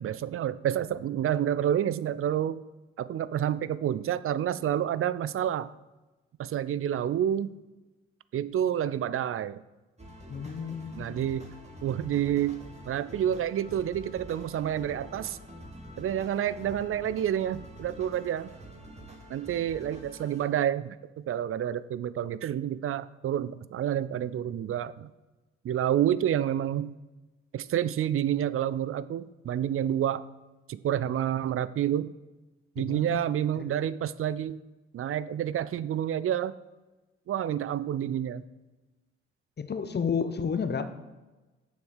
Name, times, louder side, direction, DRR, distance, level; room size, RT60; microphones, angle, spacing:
voice 1, 0.0-2.6 3.0-5.7 6.4-7.6 8.3-9.6 11.0-11.5 11.8-15.4 16.0-18.5 19.3-21.0 21.3-25.1 25.6-26.9 27.5-30.2 30.7-32.1 32.8-34.6 34.9-36.5 37.3-38.4, right 10 dB, 45° right, 16 dB, 0.5 m, -29 dB
sound 1, 10.0-20.5, equal, 20° right, 2.2 m, -47 dB
voice 2, 10.3-11.2 32.8-33.2 33.6-33.9 39.6-40.8, left 6 dB, 30° left, 10 dB, 1.0 m, -32 dB
7.1 x 6.3 x 6.5 m, 1.2 s
hypercardioid pair, 45°, 32 cm